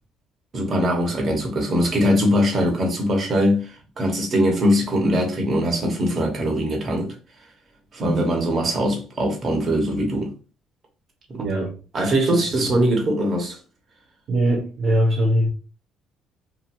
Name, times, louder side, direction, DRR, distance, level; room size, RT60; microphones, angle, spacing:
voice 1, 0.5-7.1 7.9-10.3 11.3-11.5 11.9-13.6, equal, 40° right, 1.0 m, -21 dB
voice 2, 11.4-11.7 14.3-15.5, right 1 dB, 60° right, 0.8 m, -20 dB
2.9 x 2.6 x 2.5 m
cardioid pair, 110°, 0 cm